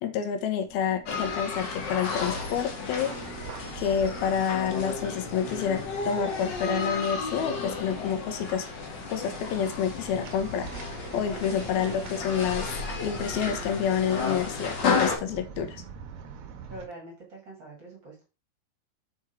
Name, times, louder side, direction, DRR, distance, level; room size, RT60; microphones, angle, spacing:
voice 1, 0.0-3.1 3.8-8.7 9.1-12.7 13.0-15.8, left 8 dB, 85° left, 6 dB, 3.0 m, -28 dB
sound 1, 0.7-16.8, right 7 dB, 75° right, 2.7 m, -45 dB
sound 2, 1.1-15.1, left 4 dB, 50° left, 1.3 m, -33 dB
voice 2, 16.7-18.2, right 2 dB, 40° right, 0 dB, 2.1 m, -44 dB
6.2 x 5.9 x 4.4 m, 0.29 s
omnidirectional pair, 4.3 m